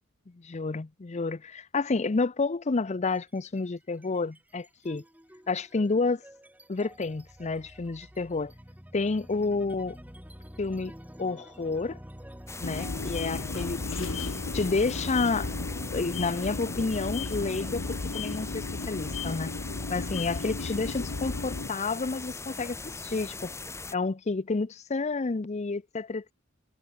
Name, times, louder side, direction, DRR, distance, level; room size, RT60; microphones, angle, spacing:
voice 1, 0.3-5.0 5.5-6.2 6.7-8.5 8.9-10.0 10.6-10.9 11.2-12.0 12.6-14.1 14.5-15.5 15.9-19.5 19.9-23.5 23.9-26.3, left 3 dB, 35° left, 0.6 m, -30 dB
sound 1, 3.0-3.6 3.9-20.5, equal, 10° right, 7.9 m, -48 dB
sound 2, 12.5-23.9, left 3 dB, 15° left, 1.1 m, -40 dB
sound 3, 12.6-21.7, left 3 dB, 85° left, 1.0 m, -34 dB
head